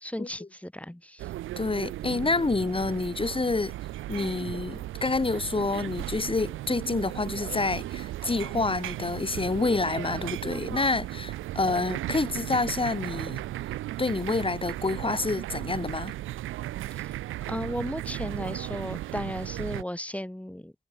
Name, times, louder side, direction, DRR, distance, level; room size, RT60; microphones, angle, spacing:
voice 1, 0.0-1.3 16.9-17.2 17.5-20.7, left 1 dB, 5° left, 1.7 m, -35 dB
sound 1, 1.2-19.8, right 15 dB, 90° right, 1.0 m, -36 dB
voice 2, 1.6-3.7 4.1-13.4 14.0-16.1, left 3 dB, 25° left, 1.4 m, -28 dB
supercardioid pair, 40°, 20 cm